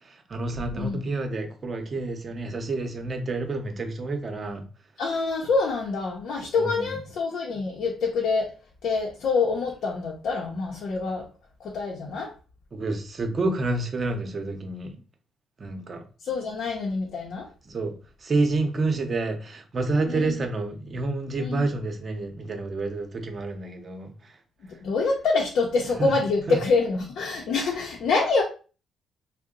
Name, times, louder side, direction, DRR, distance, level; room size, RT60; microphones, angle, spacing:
voice 1, 0.1-4.7 6.6-6.9 12.7-14.9 15.6-16.0 17.7-17.9 18.2-24.3 26.0-26.1 26.5-26.6, right 2 dB, 40° right, 0.7 m, -29 dB
voice 2, 0.7-1.1 5.0-8.5 8.8-11.3 11.6-12.3 16.2-17.5 20.1-20.3 21.4-21.7 24.6-28.4, left 4 dB, 70° left, 0.7 m, -26 dB
2.7 x 2.1 x 3.8 m
cardioid pair, 90°, 0 cm